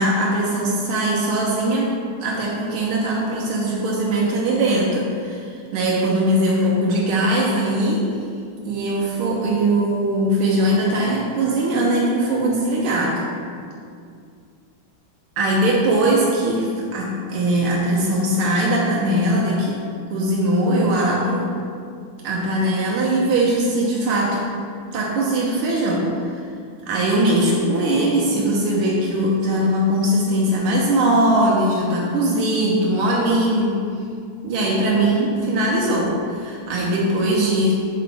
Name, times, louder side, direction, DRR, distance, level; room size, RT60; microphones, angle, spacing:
voice 1, 0.0-8.0 8.7-13.2 15.4-19.8 20.1-21.6 22.2-24.5 24.9-26.4 26.9-33.7 34.4-37.7, right 1 dB, 90° right, -4 dB, 1.8 m, -20 dB
7.6 x 6.4 x 3.4 m, 2.3 s
omnidirectional pair, 2.3 m